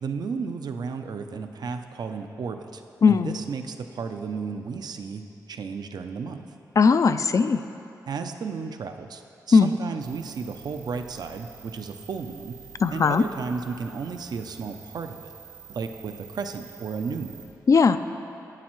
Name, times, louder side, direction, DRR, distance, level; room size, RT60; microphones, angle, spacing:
voice 1, 0.0-2.8 3.1-6.4 8.1-12.6 12.9-15.3 15.7-17.5, right 5 dB, 70° right, 7 dB, 0.5 m, -33 dB
voice 2, 3.0-3.4 6.8-7.6 9.5-9.7 12.8-13.2 17.7-18.0, left 5 dB, 50° left, 11 dB, 0.4 m, -18 dB
sound 1, 10.0-17.5, right 7 dB, 90° right, 1.8 m, -48 dB
11.5 x 8.7 x 3.1 m, 2.7 s
cardioid pair, 60°, 7 cm